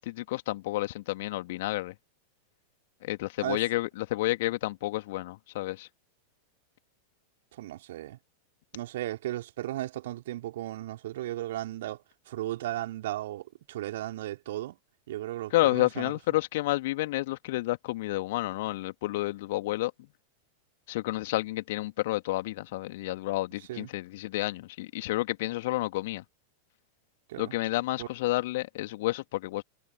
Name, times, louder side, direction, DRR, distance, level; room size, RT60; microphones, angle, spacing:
voice 1, 0.0-1.9 3.0-5.9 15.5-19.9 20.9-26.2 27.4-29.6, left 18 dB, 50° left, 2.6 m, -30 dB
voice 2, 7.6-8.2 8.7-12.0 12.3-14.8 15.1-16.1 23.7-23.9 27.3-27.5 28.0-28.1, right 14 dB, 55° right, 3.6 m, -35 dB
figure-of-eight pair, 90°, 0 cm